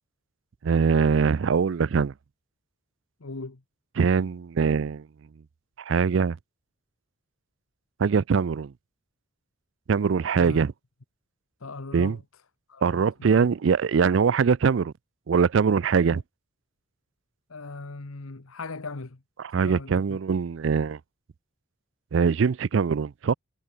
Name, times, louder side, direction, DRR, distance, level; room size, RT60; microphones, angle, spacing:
voice 1, 0.6-2.1 4.0-5.0 5.9-6.4 8.0-8.7 9.9-10.7 11.9-12.2 12.8-14.9 15.3-16.2 19.5-21.0 22.1-23.3, right 6 dB, 65° right, 0.4 m, -22 dB
voice 2, 3.2-3.6 10.3-10.6 11.6-12.2 12.7-13.5 17.5-19.2 19.6-20.2, left 3 dB, 85° left, 1.2 m, -38 dB
head